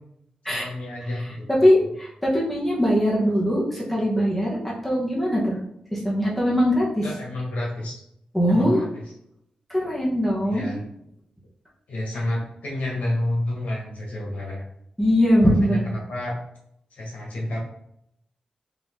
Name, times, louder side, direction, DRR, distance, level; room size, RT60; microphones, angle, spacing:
voice 1, 0.5-1.8 7.0-8.0 8.5-9.0 9.8-9.9 10.4-10.8 11.9-14.6 15.4-16.4 16.9-17.6, left 1 dB, 85° left, -2 dB, 1.4 m, -30 dB
voice 2, 1.6-5.6 5.9-7.1 8.3-8.8 9.7-10.7 15.0-15.8, equal, ahead, -5 dB, 1.0 m, -21 dB
4.2 x 2.8 x 3.6 m, 0.74 s
wide cardioid pair, 150°, 2 cm